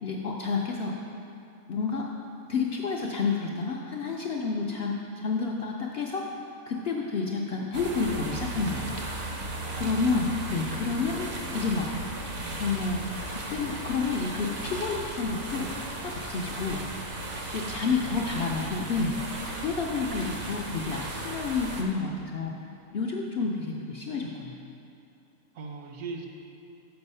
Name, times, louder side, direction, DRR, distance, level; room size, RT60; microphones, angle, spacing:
voice 1, 0.0-1.0 1.7-2.1 2.5-6.3 6.7-8.9 9.7-11.3 11.5-11.9 12.6-13.0 13.3-15.7 16.0-16.8 17.5-19.2 19.5-22.5 22.9-24.6, left 4 dB, 60° left, -1 dB, 0.6 m, -30 dB
sound 1, 7.7-21.8, right 2 dB, 45° right, 0.8 m, -36 dB
voice 2, 9.7-10.0 10.9-11.1 17.7-18.0 25.6-26.3, right 4 dB, 70° right, 1 dB, 1.2 m, -40 dB
6.9 x 5.4 x 5.4 m, 2.7 s
omnidirectional pair, 1.5 m